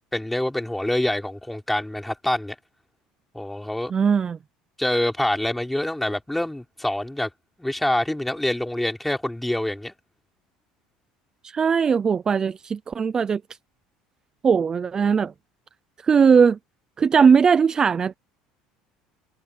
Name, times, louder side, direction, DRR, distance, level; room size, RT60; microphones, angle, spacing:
voice 1, 0.1-2.6 3.3-3.9 4.8-7.3 7.6-9.9, left 1 dB, 5° left, 3.9 m, -26 dB
voice 2, 3.9-4.4 11.4-13.4 14.4-15.3 16.0-16.6 17.0-18.2, right 6 dB, 25° right, 0.6 m, -19 dB
supercardioid pair, 115°, 3 cm